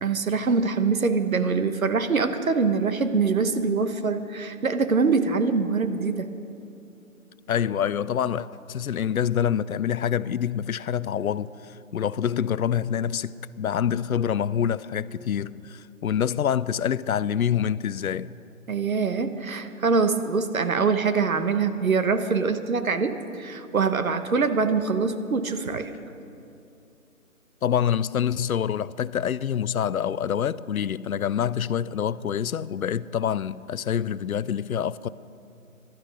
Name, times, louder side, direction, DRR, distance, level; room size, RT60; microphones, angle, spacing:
voice 1, 0.0-6.3 18.7-25.9, right 4 dB, 70° right, 1.1 m, -24 dB
voice 2, 7.5-11.5 11.9-18.3 27.6-35.1, left 9 dB, 75° left, 0.5 m, -26 dB
15.0 x 12.0 x 5.4 m
figure-of-eight pair, 165°, 43 cm